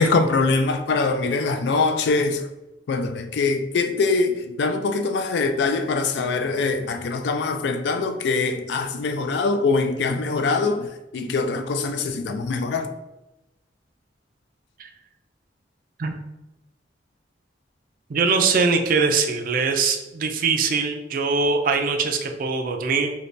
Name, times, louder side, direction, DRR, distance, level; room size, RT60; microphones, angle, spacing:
voice 1, 0.0-2.5 2.9-12.9, left 3 dB, 65° left, 0.3 m, -23 dB
voice 2, 18.1-23.1, right 4 dB, 50° right, 0.4 m, -22 dB
2.9 x 2.7 x 3.2 m
head